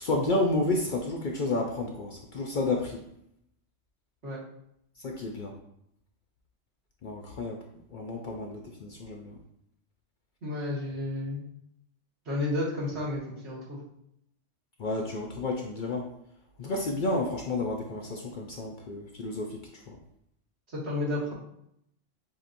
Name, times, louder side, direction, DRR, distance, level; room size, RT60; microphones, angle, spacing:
voice 1, 0.0-3.0 5.0-5.5 7.0-7.6 7.9-9.4 14.8-16.1 16.6-20.0, left 2 dB, 55° left, 1 dB, 0.6 m, -31 dB
voice 2, 10.4-11.4 12.3-13.8 20.7-21.3, left 2 dB, 70° right, -7 dB, 1.9 m, -31 dB
7.5 x 2.7 x 2.6 m, 0.75 s
omnidirectional pair, 1.2 m